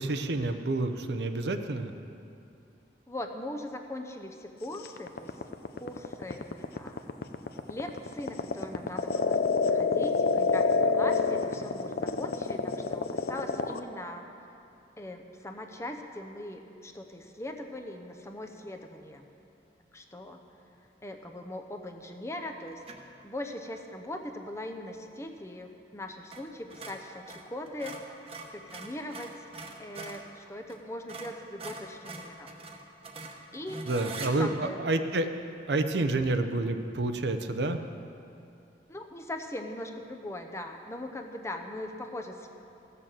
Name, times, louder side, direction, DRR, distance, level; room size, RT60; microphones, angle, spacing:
voice 1, 0.0-1.9 33.9-35.3 35.7-37.8, right 2 dB, 70° right, 7 dB, 0.7 m, -29 dB
voice 2, 3.1-5.3 5.8-7.1 7.7-9.4 9.7-14.3 15.0-19.2 19.9-20.4 21.0-22.8 23.2-28.0 28.5-29.3 29.8-32.5 33.5-33.8 34.2-34.8 38.9-42.5, left 1 dB, 15° left, 4 dB, 0.7 m, -40 dB
sound 1, 4.8-13.8, left 4 dB, 60° left, 0.5 m, -27 dB
sound 2, 22.8-23.2 26.2-26.4 26.7-30.3 30.7-30.8 31.1-34.3, right 3 dB, 35° right, 1.0 m, -43 dB
15.0 x 6.8 x 7.5 m, 2.6 s
head